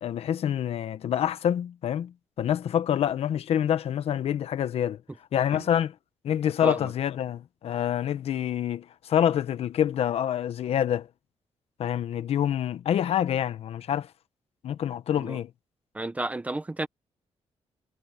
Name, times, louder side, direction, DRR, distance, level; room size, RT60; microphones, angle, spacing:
voice 1, 0.0-5.0 5.3-5.9 6.2-11.1 11.8-14.1 14.6-15.5, left 10 dB, 65° left, 1.0 m, -27 dB
voice 2, 15.9-16.9, right 2 dB, 10° right, 0.8 m, -32 dB
cardioid pair, 150°, 11 cm